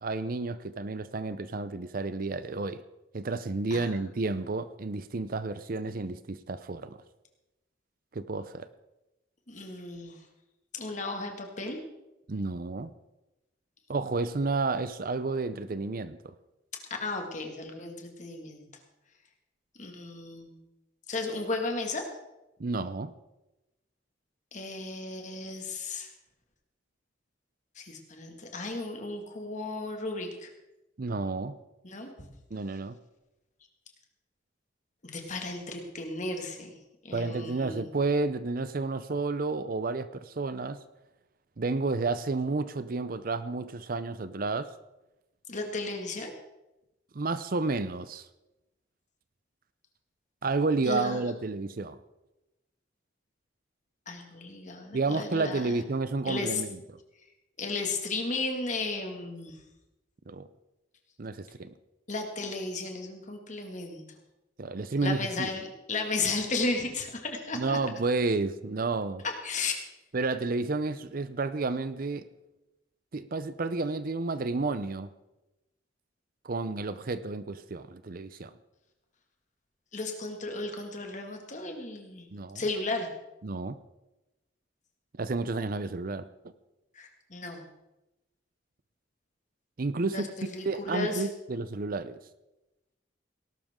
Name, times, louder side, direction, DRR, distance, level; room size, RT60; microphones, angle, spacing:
voice 1, 0.0-2.8 3.1-7.0 8.1-8.7 12.3-12.9 13.9-16.3 22.6-23.1 31.0-31.5 32.5-33.0 37.1-40.8 41.6-44.7 47.1-48.3 50.4-52.0 54.9-56.8 60.3-60.5 61.2-61.7 64.6-65.5 67.5-69.2 70.1-72.3 73.1-75.1 76.4-78.5 82.3-82.6 83.4-83.8 85.2-86.5 89.8-90.3 90.6-92.2, right 3 dB, 50° right, 14 dB, 0.6 m, -31 dB
voice 2, 9.5-10.2 10.7-11.8 17.0-18.7 19.8-20.6 21.1-22.1 24.5-26.1 27.8-30.5 31.8-32.1 35.0-36.7 37.0-37.9 45.5-46.3 50.8-51.2 54.1-55.7 56.2-56.6 57.6-59.6 62.1-64.2 65.0-67.8 69.2-69.7 79.9-82.3 82.5-83.1 87.0-87.7 90.1-91.3, left 3 dB, 40° left, 3 dB, 2.1 m, -34 dB
18.0 x 12.0 x 3.7 m, 0.96 s
head